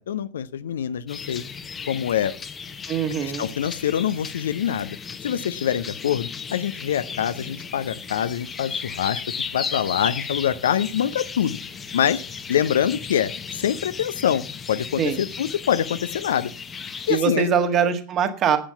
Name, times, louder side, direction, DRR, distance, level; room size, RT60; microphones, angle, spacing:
voice 1, 0.0-1.4 1.9-2.3 3.2-5.0 5.2-11.6 11.9-12.2 12.5-16.5 17.1-17.5, left 9 dB, 60° left, 14 dB, 0.6 m, -25 dB
sound 1, 1.1-17.2, left 6 dB, 20° left, 1.0 m, -35 dB
voice 2, 2.9-3.5 15.0-15.2 17.1-18.6, right 8 dB, 30° right, 8 dB, 1.7 m, -22 dB
10.0 x 8.8 x 7.0 m, 0.41 s
figure-of-eight pair, 90°, 0 cm